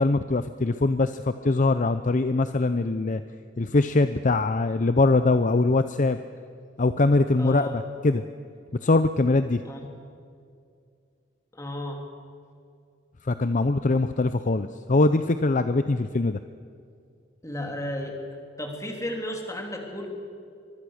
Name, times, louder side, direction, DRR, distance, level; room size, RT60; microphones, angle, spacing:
voice 1, 0.0-3.2 3.6-6.2 6.8-8.2 8.8-9.6 13.2-16.4, left 2 dB, 40° left, 10 dB, 0.6 m, -22 dB
voice 2, 7.4-7.8 9.6-9.9 11.5-12.0 17.4-18.2 18.6-20.1, left 1 dB, 15° left, 2 dB, 3.3 m, -33 dB
24.0 x 22.0 x 6.5 m, 2.3 s
head